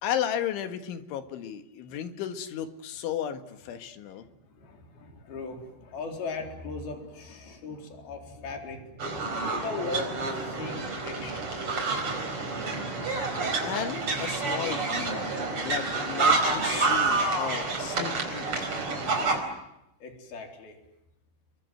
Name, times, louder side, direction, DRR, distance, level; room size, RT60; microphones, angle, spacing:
voice 1, 0.0-4.3 13.6-15.3 15.6-18.5, left 9 dB, 70° left, 8 dB, 4.0 m, -34 dB
voice 2, 4.5-11.7 20.0-20.8, left 3 dB, 50° left, 3 dB, 5.7 m, -38 dB
sound 1, 9.0-19.4, right 3 dB, 30° right, 5.1 m, -28 dB
30.0 x 23.5 x 7.9 m, 0.86 s
omnidirectional pair, 5.7 m